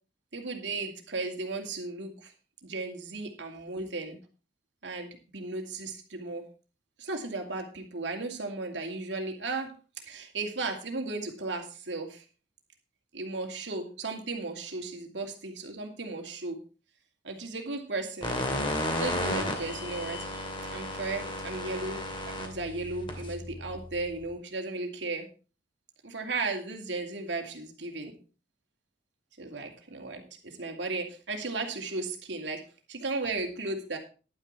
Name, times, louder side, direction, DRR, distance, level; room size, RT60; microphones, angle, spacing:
voice 1, 0.3-2.3 2.6-4.2 4.8-6.5 7.0-12.2 13.1-16.6 17.2-18.3 18.9-22.0 22.2-25.3 26.0-28.2 29.4-32.6 32.9-34.0, right 3 dB, 75° right, 4 dB, 2.6 m, -35 dB
sound 1, 18.2-24.3, left 1 dB, 30° left, 2.7 m, -34 dB
11.0 x 9.4 x 4.3 m, 0.35 s
head